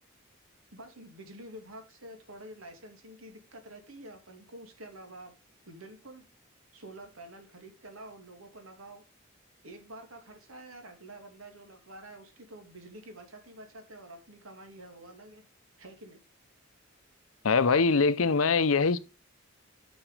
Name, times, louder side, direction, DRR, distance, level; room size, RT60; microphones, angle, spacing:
voice 1, 0.7-5.3 5.7-6.3 6.7-9.0 9.6-15.4 15.8-16.2, right 1 dB, 85° right, 2.5 m, -48 dB
voice 2, 17.4-19.0, left 4 dB, 85° left, 0.7 m, -23 dB
9.0 x 5.4 x 4.9 m
head